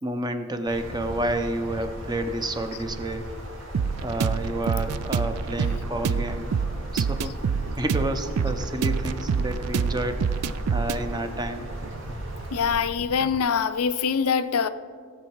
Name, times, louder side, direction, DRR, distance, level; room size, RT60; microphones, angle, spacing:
voice 1, 0.0-3.2 4.0-6.5 6.9-10.5 10.7-11.7, right 1 dB, 20° right, 8 dB, 0.7 m, -30 dB
sound 1, 0.7-12.8, equal, 55° right, 1.9 m, -39 dB
sound 2, 3.7-13.4, right 5 dB, 80° right, 0.4 m, -27 dB
voice 2, 12.5-14.7, left 6 dB, 75° left, 12 dB, 0.5 m, -24 dB
17.0 x 7.3 x 4.7 m, 2.1 s
head